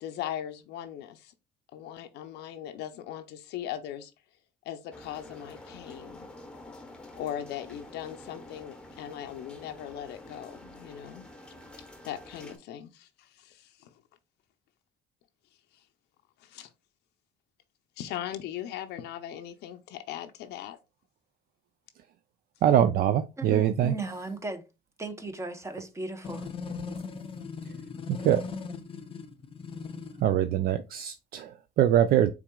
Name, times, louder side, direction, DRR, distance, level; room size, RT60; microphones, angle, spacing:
voice 1, 0.0-1.3 1.7-4.1 4.6-6.3 7.1-11.2 12.0-13.9 15.7-15.8 16.4-16.7 18.0-20.8, left 11 dB, 80° left, 0.5 m, -39 dB
sound 1, 4.9-12.6, left 1 dB, 5° left, 0.9 m, -48 dB
voice 2, 22.6-23.9 28.1-28.4 30.2-32.3, right 10 dB, 65° right, 0.4 m, -23 dB
voice 3, 23.4-24.7 25.0-26.5, right 2 dB, 15° right, 0.8 m, -36 dB
sound 2, 26.2-30.2, left 5 dB, 30° left, 0.6 m, -39 dB
5.8 x 3.8 x 2.3 m
cardioid pair, 110°, 17 cm